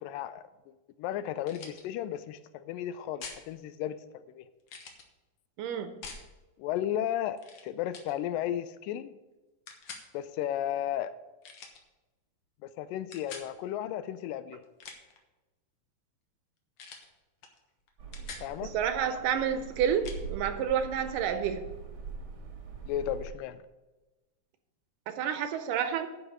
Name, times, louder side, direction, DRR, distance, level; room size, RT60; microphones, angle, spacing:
voice 1, 0.0-4.5 6.6-7.4 7.6-9.1 10.1-11.1 12.6-14.6 18.4-18.7 22.9-23.6, left 11 dB, 80° left, 13 dB, 2.1 m, -34 dB
sound 1, 1.5-1.8 3.2-3.4 4.7-5.1 6.0-6.3 7.4-7.6 7.9-8.1 9.7-10.1 11.4-11.8 13.1-13.5 14.6-15.2 16.8-17.1 17.4-17.6 17.9-18.5 20.0-20.2, left 5 dB, 65° left, 1.4 m, -45 dB
voice 2, 5.6-6.0 18.6-21.6 25.1-26.1, right 8 dB, 80° right, 9 dB, 2.1 m, -29 dB
sound 2, 18.0-23.3, right 5 dB, 50° right, 1.6 m, -43 dB
10.5 x 5.4 x 7.3 m, 1.1 s
omnidirectional pair, 4.1 m